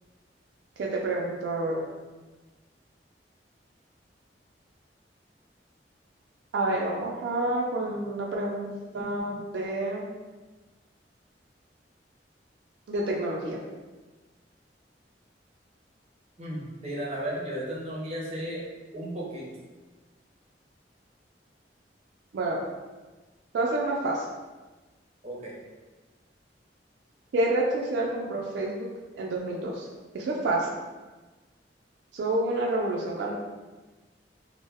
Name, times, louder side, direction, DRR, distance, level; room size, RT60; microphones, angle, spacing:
voice 1, 0.8-1.9 6.5-10.1 12.9-13.6 22.3-22.6 23.5-24.2 27.3-28.9 29.2-29.9 30.1-30.7 32.1-33.3, right 2 dB, 75° right, -2 dB, 0.3 m, -28 dB
voice 2, 16.4-18.6 18.9-19.5 25.2-25.6, right 1 dB, 35° right, -4 dB, 0.6 m, -34 dB
2.1 x 2.0 x 3.3 m, 1.3 s
head